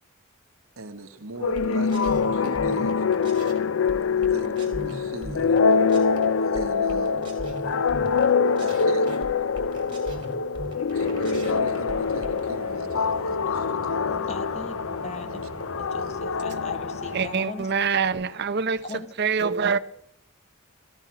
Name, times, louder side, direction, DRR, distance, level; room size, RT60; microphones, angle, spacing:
voice 1, 0.8-3.1 4.2-5.5 6.4-7.3 8.6-9.3 10.9-14.3 15.3-15.5 16.0-16.2, right 2 dB, 75° right, 1.2 m, -39 dB
sound 1, 1.4-17.8, left 5 dB, 65° left, 0.5 m, -25 dB
sound 2, 1.5-3.6 3.9-6.2 6.5-8.3 8.6-12.4, right 1 dB, 25° right, 2.5 m, -39 dB
sound 3, 10.9-17.3, left 1 dB, 85° left, 2.5 m, -41 dB
voice 2, 14.3-14.7 15.0-15.4 15.8-17.7 18.8-19.1, left 3 dB, 30° left, 1.0 m, -38 dB
voice 3, 17.1-18.8 19.2-19.8, right 6 dB, 50° right, 0.7 m, -24 dB
14.0 x 12.5 x 5.8 m
head